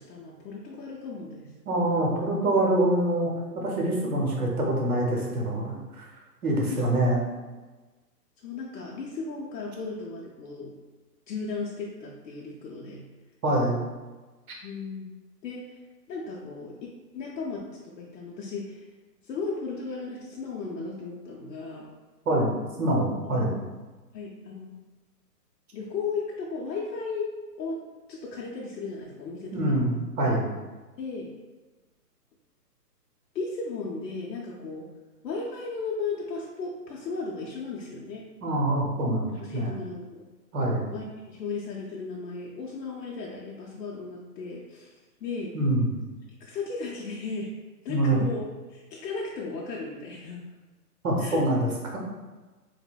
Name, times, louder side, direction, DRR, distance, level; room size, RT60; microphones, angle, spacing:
voice 1, 0.0-1.5 6.5-7.1 8.4-10.7 11.3-13.0 14.6-15.1 15.4-15.8 16.1-16.8 17.1-18.9 19.2-21.9 23.3-23.5 24.1-24.7 25.7-27.3 27.6-27.8 28.1-29.9 31.0-31.3 33.3-34.9 35.2-38.3 39.4-40.2 40.9-45.5 46.4-47.5 47.8-50.4 51.2-51.4, left 4 dB, 85° left, -4 dB, 0.6 m, -35 dB
voice 2, 1.7-6.0 6.4-7.2 13.4-13.8 22.3-23.6 29.5-30.5 38.4-39.7 40.5-40.9 45.5-45.9 47.9-48.2 51.0-52.0, right 1 dB, 60° right, -1 dB, 0.8 m, -25 dB
3.2 x 2.0 x 2.2 m, 1.2 s
hypercardioid pair, 170°, 50 cm